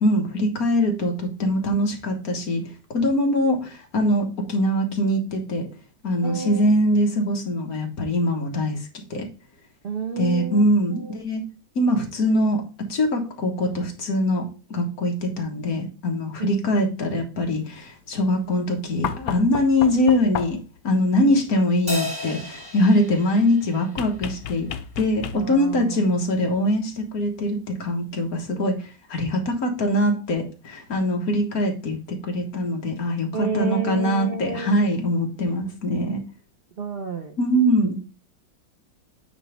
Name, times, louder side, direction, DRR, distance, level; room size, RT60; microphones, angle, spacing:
voice 1, 0.0-2.6 2.9-5.6 6.0-8.8 9.1-9.3 10.2-11.4 11.8-12.6 12.9-20.6 20.8-24.7 25.0-36.2 37.4-38.0, left 1 dB, 50° left, 3 dB, 1.7 m, -23 dB
voice 2, 6.2-6.7 9.8-11.2 16.4-16.5 25.3-26.0 33.3-34.8 36.8-37.3, right 5 dB, 60° right, 5 dB, 0.5 m, -30 dB
sound 1, 19.0-20.8 24.0-25.7 27.2-27.3, left 9 dB, 85° left, 1.4 m, -32 dB
Crash cymbal, 21.9-24.6, left 2 dB, 10° right, 1.8 m, -33 dB
9.2 x 3.2 x 5.0 m, 0.33 s
omnidirectional pair, 2.1 m